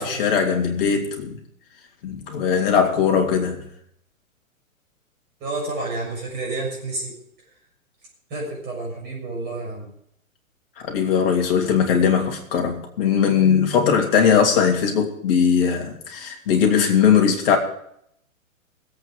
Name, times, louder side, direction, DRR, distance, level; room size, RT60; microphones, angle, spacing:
voice 1, 0.0-1.4 2.0-3.7 10.8-17.6, left 7 dB, 45° left, 2.9 m, -19 dB
voice 2, 5.4-7.2 8.3-9.9, right 2 dB, 25° right, 6.5 m, -30 dB
20.0 x 8.5 x 5.1 m
figure-of-eight pair, 115°, 41 cm